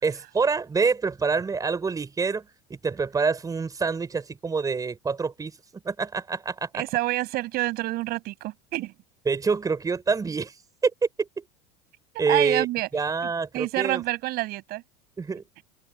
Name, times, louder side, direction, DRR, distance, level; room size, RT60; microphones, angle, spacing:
voice 1, 0.0-2.5 2.8-6.8 9.3-10.5 10.8-10.9 11.2-11.3 12.2-12.7 12.9-14.0 15.2-15.4, right 5 dB, 20° right, 4.9 m, -26 dB
voice 2, 6.7-8.9 12.3-12.9 13.5-14.8 15.6-15.7, right 18 dB, 55° right, 7.8 m, -27 dB
open air
supercardioid pair, 115°, 19 cm